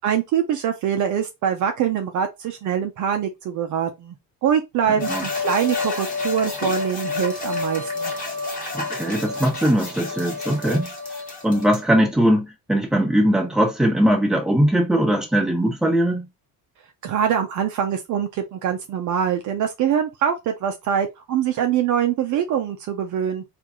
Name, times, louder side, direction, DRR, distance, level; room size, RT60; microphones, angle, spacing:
voice 1, 0.0-4.2 4.4-8.1 17.0-23.4, right 8 dB, 50° right, 0.7 m, -24 dB
voice 2, 4.9-5.2 8.7-10.9 11.4-16.3, equal, ahead, 1.4 m, -20 dB
sound 1, 5.0-11.8, left 3 dB, 20° left, 1.3 m, -29 dB
4.5 x 2.6 x 3.7 m
cardioid pair, 170°, 38 cm